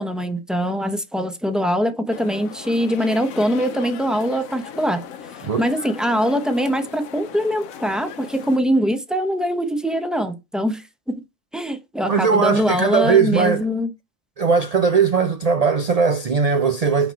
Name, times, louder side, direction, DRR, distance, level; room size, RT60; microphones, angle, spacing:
voice 1, 0.0-5.0 5.6-11.2 11.5-13.9, equal, ahead, 0.6 m, -22 dB
sound 1, 2.1-8.6, left 8 dB, 85° left, 1.2 m, -38 dB
voice 2, 12.1-13.7 14.4-17.1, right 5 dB, 60° right, 0.4 m, -19 dB
6.0 x 5.2 x 4.0 m
omnidirectional pair, 1.4 m